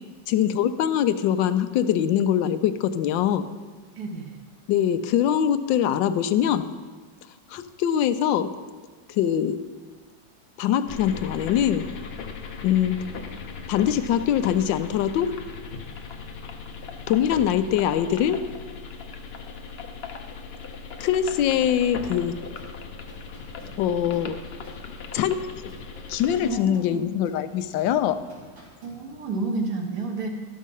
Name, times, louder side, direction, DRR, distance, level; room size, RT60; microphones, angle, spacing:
voice 1, 0.3-3.5 4.7-6.7 7.5-8.5 9.1-9.6 10.6-11.9 12.6-13.1 13.7-15.4 17.1-18.5 21.0-22.4 23.8-24.4 25.1-25.5 26.1-28.2, left 10 dB, 90° left, 11 dB, 1.3 m, -23 dB
voice 2, 4.0-4.4 26.4-27.0 28.8-30.3, right 3 dB, 65° right, 2 dB, 1.7 m, -30 dB
sound 1, 10.9-26.5, left 5 dB, 60° left, 0.6 m, -38 dB
sound 2, 21.0-29.4, right 2 dB, 85° right, 2.7 m, -50 dB
12.0 x 6.4 x 5.4 m, 1.4 s
omnidirectional pair, 2.0 m